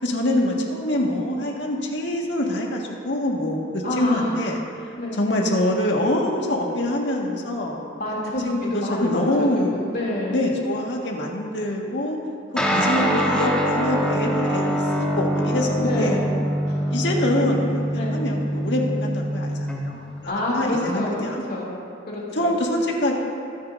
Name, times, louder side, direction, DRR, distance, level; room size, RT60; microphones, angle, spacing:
voice 1, 0.0-4.6 5.2-7.8 8.4-9.8 10.3-12.2 12.6-16.2 16.9-19.5 19.8-21.4 22.3-23.2, left 1 dB, 80° left, -1 dB, 1.7 m, -25 dB
voice 2, 3.8-4.5 5.0-5.2 8.0-10.4 12.5-13.3 15.8-16.3 16.7-16.8 17.9-18.2 20.3-21.7 22.1-22.5, left 1 dB, 55° left, -5 dB, 2.8 m, -28 dB
Guitar, 12.6-20.3, equal, 5° left, 1.3 m, -24 dB
22.5 x 9.7 x 2.7 m, 2.6 s
head